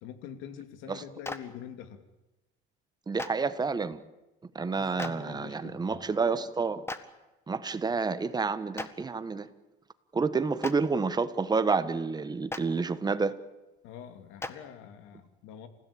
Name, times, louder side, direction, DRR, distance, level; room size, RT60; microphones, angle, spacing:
voice 1, 0.0-2.0 4.7-6.0 13.8-15.7, left 9 dB, 75° left, 9 dB, 2.9 m, -45 dB
Clapping, 1.2-1.4 3.2-3.3 5.0-5.1 6.9-7.0 8.8-8.9 10.6-10.7 12.5-12.6 14.4-14.5, left 2 dB, 10° left, 1.6 m, -34 dB
voice 2, 3.1-4.0 4.5-6.8 7.5-9.5 10.1-13.4, right 4 dB, 20° right, 12 dB, 1.4 m, -29 dB
28.0 x 16.5 x 8.8 m, 1.0 s
cardioid pair, 125°, 21 cm